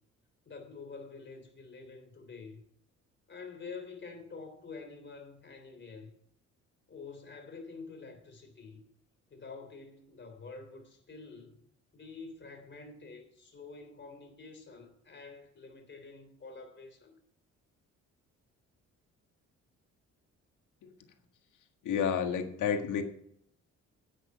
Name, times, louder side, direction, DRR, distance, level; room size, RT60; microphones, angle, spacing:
voice 1, 0.5-2.6 3.3-6.1 6.9-8.8 9.3-11.6 11.9-17.1, left 4 dB, 40° left, 3.3 m, -47 dB
voice 2, 21.8-23.0, left 7 dB, 85° left, 1.6 m, -30 dB
10.5 x 7.9 x 5.6 m
cardioid pair, 90°, 30 cm